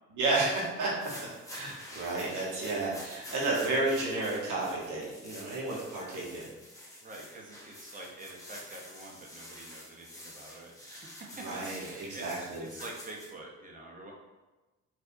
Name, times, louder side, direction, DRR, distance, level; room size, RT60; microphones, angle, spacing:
voice 1, 0.1-6.5 11.4-12.6, right 2 dB, 85° right, -4 dB, 1.3 m, -32 dB
sound 1, 0.8-13.3, left 1 dB, 10° left, 0.8 m, -48 dB
voice 2, 7.0-14.1, right 2 dB, 25° right, -1 dB, 0.9 m, -47 dB
4.7 x 2.6 x 2.7 m, 1.1 s
cardioid pair, 90°, 30 cm